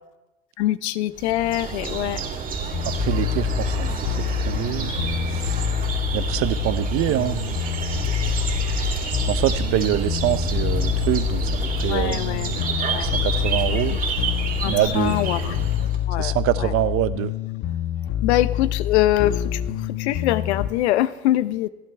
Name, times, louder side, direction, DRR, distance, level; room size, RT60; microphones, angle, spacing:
voice 1, 0.6-2.2 11.9-12.5 12.9-13.1 13.9-14.0 14.6-16.7 18.2-19.6 19.9-21.7, left 14 dB, 80° left, 14 dB, 0.9 m, -24 dB
sound 1, 1.2-16.0, right 5 dB, 25° right, 3.0 m, -29 dB
sound 2, 2.7-20.7, left 11 dB, 45° left, 1.2 m, -26 dB
voice 2, 2.8-5.0 5.3-5.6 6.1-7.4 9.2-11.5 11.8-12.2 13.0-14.0 14.7-15.2 16.2-17.3, right 14 dB, 40° right, 14 dB, 0.8 m, -25 dB
28.5 x 11.0 x 3.5 m, 1.0 s
supercardioid pair, 125°, 33 cm